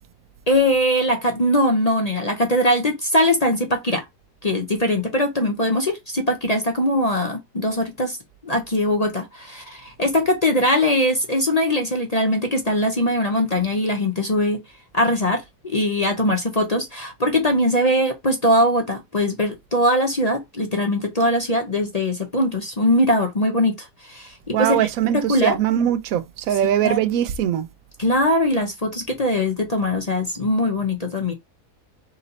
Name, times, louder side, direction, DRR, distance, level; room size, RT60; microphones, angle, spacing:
voice 1, 0.5-4.0 4.4-8.2 8.4-14.6 14.9-24.9 25.1-25.6 26.5-26.6 26.8-27.0 28.0-31.3, left 1 dB, 35° left, 0.6 m, -21 dB
voice 2, 24.5-27.7, right 11 dB, 65° right, 1.0 m, -21 dB
4.1 x 2.8 x 3.9 m
omnidirectional pair, 1.7 m